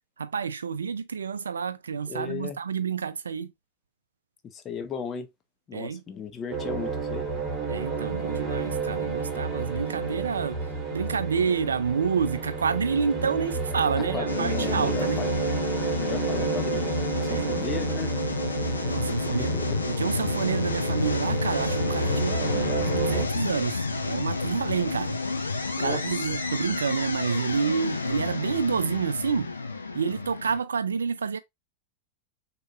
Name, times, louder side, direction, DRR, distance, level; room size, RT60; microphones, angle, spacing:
voice 1, 0.2-3.5 5.7-6.0 7.7-10.6 10.9-15.2 17.3-17.5 18.9-19.5 19.8-25.5 25.8-29.5 29.9-31.4, right 6 dB, 70° right, 0.5 m, -29 dB
voice 2, 2.1-2.6 4.4-5.3 5.7-7.3 14.1-15.3 16.0-17.0 17.3-18.1 19.3-19.8 25.8-26.0, left 7 dB, 25° left, 0.9 m, -35 dB
sound 1, 6.5-23.3, right 4 dB, 20° right, 2.2 m, -31 dB
sound 2, 14.3-30.6, left 4 dB, 75° left, 0.8 m, -30 dB
6.4 x 3.0 x 2.4 m
figure-of-eight pair, 90°, 0 cm